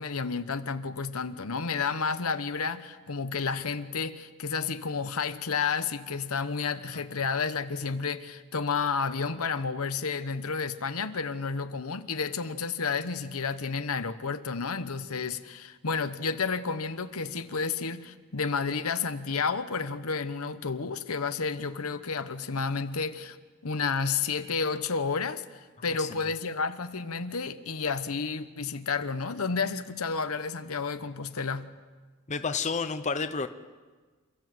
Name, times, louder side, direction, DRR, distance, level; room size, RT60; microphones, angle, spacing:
voice 1, 0.0-23.4 23.6-31.7, left 5 dB, 85° left, 10 dB, 1.1 m, -31 dB
voice 2, 32.3-33.5, left 4 dB, 35° left, 9 dB, 0.9 m, -30 dB
29.0 x 14.5 x 7.8 m, 1.4 s
head